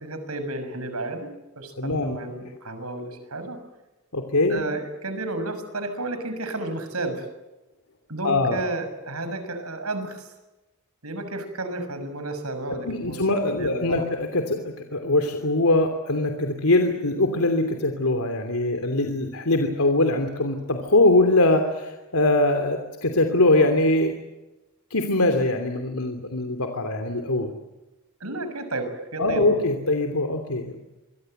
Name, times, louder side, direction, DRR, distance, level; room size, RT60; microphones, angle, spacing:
voice 1, 0.0-3.6 4.5-7.3 8.1-10.3 11.0-14.0 28.2-29.5, right 2 dB, 85° right, 9 dB, 6.3 m, -32 dB
voice 2, 1.8-2.2 4.1-4.6 8.2-8.6 12.9-24.2 24.9-27.5 29.2-30.8, left 2 dB, 85° left, 5 dB, 3.0 m, -22 dB
27.0 x 23.5 x 7.9 m, 1.1 s
head